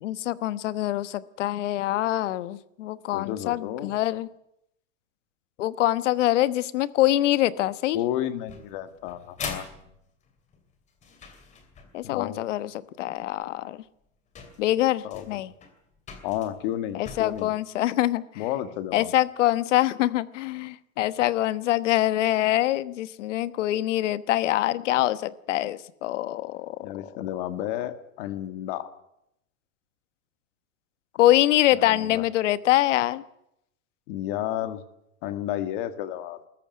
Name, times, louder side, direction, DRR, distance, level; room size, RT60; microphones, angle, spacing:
voice 1, 0.0-4.3 5.6-8.0 11.9-12.7 13.0-13.8 14.6-15.5 16.9-18.2 18.9-26.9 31.2-33.2, left 14 dB, 60° left, 16 dB, 1.2 m, -24 dB
voice 2, 3.1-3.9 7.9-9.7 12.0-12.4 15.0-15.4 16.2-17.5 18.4-19.1 26.8-28.9 31.7-32.2 34.1-34.8 35.2-36.4, left 12 dB, 40° left, 11 dB, 1.8 m, -32 dB
sound 1, 8.5-12.1 13.4-13.5 14.1-14.2 14.3-17.5, left 5 dB, 15° left, 2.6 m, -42 dB
21.5 x 14.0 x 9.5 m, 0.80 s
supercardioid pair, 175°, 41 cm